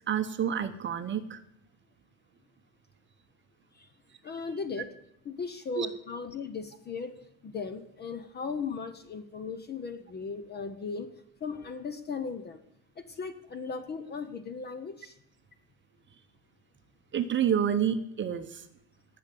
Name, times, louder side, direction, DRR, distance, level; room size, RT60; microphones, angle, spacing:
voice 1, 0.1-1.4 5.8-5.9 17.1-18.6, right 8 dB, 25° right, 9 dB, 0.9 m, -28 dB
voice 2, 4.2-5.0 5.2-7.1 7.4-11.1 11.4-12.6 13.0-15.2, left 5 dB, 20° left, 11 dB, 0.7 m, -37 dB
18.0 x 6.7 x 8.4 m, 0.76 s
cardioid pair, 145°, 47 cm